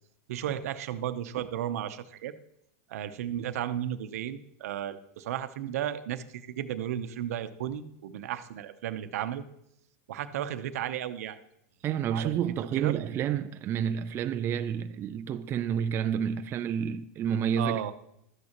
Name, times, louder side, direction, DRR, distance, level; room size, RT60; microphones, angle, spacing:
voice 1, 0.3-2.3 2.9-9.4 10.1-11.4 12.1-12.9 17.6-17.9, right 11 dB, 75° right, 0.8 m, -34 dB
voice 2, 11.8-17.8, right 8 dB, 30° right, 0.4 m, -29 dB
13.0 x 9.6 x 3.0 m
supercardioid pair, 125°, 8 cm